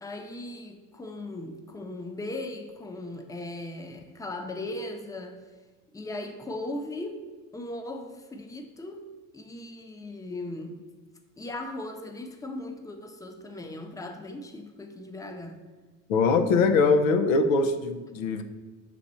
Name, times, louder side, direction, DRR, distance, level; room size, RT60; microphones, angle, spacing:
voice 1, 0.0-5.4 5.9-9.1 9.3-10.9 11.4-15.6, left 2 dB, 10° left, 5 dB, 0.7 m, -38 dB
voice 2, 16.1-18.4, left 4 dB, 80° left, 8 dB, 0.7 m, -22 dB
5.9 x 4.2 x 4.3 m, 1.3 s
hypercardioid pair, 80°, 39 cm